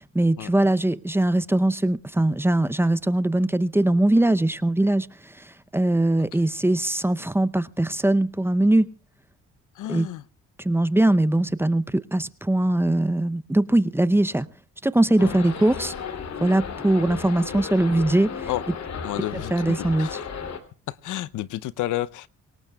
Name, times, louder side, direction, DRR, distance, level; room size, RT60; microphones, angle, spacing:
voice 1, 0.0-5.1 5.4-5.5 5.7-8.9 9.9-10.1 10.6-14.5 14.8-15.9 16.4-18.5 19.5-20.1, right 1 dB, 10° right, 0.7 m, -21 dB
voice 2, 9.8-10.2 15.2-15.3 18.5-18.6 19.0-19.5 20.0-20.3 20.9-22.3, left 14 dB, 80° left, 0.7 m, -30 dB
sound 1, 15.2-20.6, left 6 dB, 60° left, 3.0 m, -34 dB
26.0 x 18.0 x 2.3 m
cardioid pair, 90°, 30 cm